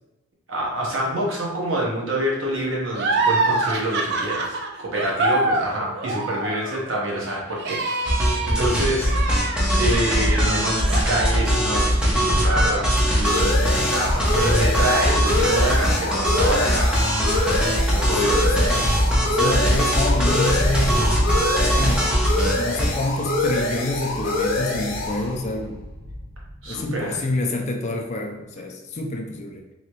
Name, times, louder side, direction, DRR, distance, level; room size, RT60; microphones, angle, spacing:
voice 1, 0.5-8.0 8.5-9.2 9.8-17.7 17.9-18.5 26.6-27.2, right 1 dB, 70° right, -3 dB, 1.0 m, -27 dB
sound 1, 2.9-12.0 12.4-13.4, right 3 dB, 55° right, 0.4 m, -26 dB
sound 2, 8.0-22.9, equal, 5° right, 0.6 m, -21 dB
sound 3, 11.6-26.7, left 2 dB, 65° left, 0.7 m, -26 dB
voice 2, 18.2-21.2 21.6-22.1 22.6-25.8 26.7-29.6, left 2 dB, 35° left, 2 dB, 0.4 m, -27 dB
3.1 x 2.8 x 2.9 m, 0.99 s
head